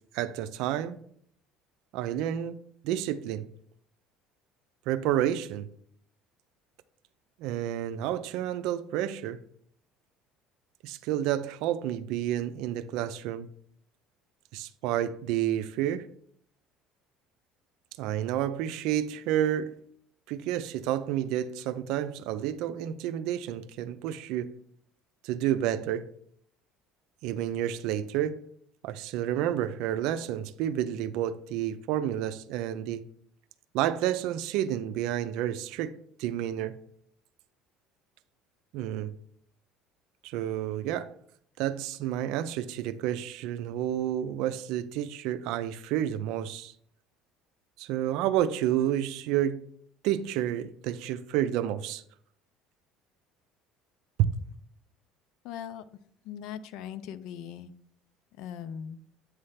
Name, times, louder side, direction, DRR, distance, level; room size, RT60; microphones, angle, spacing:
voice 1, 0.1-1.0 1.9-3.5 4.9-5.7 7.4-9.4 10.8-13.5 14.5-16.1 18.0-19.7 20.3-24.5 25.2-26.1 27.2-28.4 28.8-33.0 33.7-36.8 38.7-39.1 40.2-41.1 41.6-46.7 47.8-49.6 50.0-52.0, right 11 dB, 70° right, 0.5 m, -30 dB
voice 2, 55.4-55.8 56.2-57.7 58.3-59.0, left 9 dB, 65° left, 0.5 m, -39 dB
8.5 x 3.3 x 5.7 m
cardioid pair, 135°, 0 cm